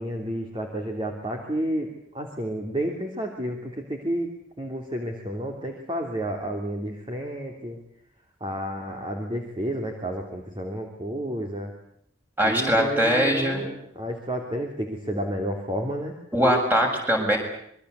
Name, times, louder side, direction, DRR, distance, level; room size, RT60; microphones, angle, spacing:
voice 1, 0.0-1.9 2.1-7.8 8.4-11.7 12.4-16.1, equal, 25° right, 2 dB, 3.3 m, -31 dB
voice 2, 12.4-13.7 16.3-17.4, equal, 10° right, 2 dB, 7.3 m, -21 dB
27.0 x 23.0 x 8.3 m, 0.69 s
head